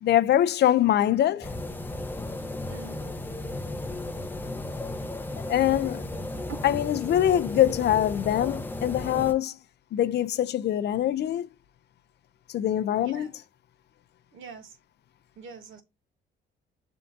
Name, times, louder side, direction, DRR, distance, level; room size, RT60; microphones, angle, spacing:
voice 1, 0.0-1.5 5.5-6.1 6.6-9.6 9.9-11.5 12.5-13.3, left 11 dB, 60° left, 0.4 m, -23 dB
sound 1, 1.4-9.3, left 2 dB, 10° left, 0.5 m, -35 dB
voice 2, 2.7-3.1 13.0-13.3 14.3-14.8 15.4-15.8, right 5 dB, 80° right, 0.9 m, -45 dB
5.7 x 3.5 x 2.5 m
cardioid pair, 90°, 20 cm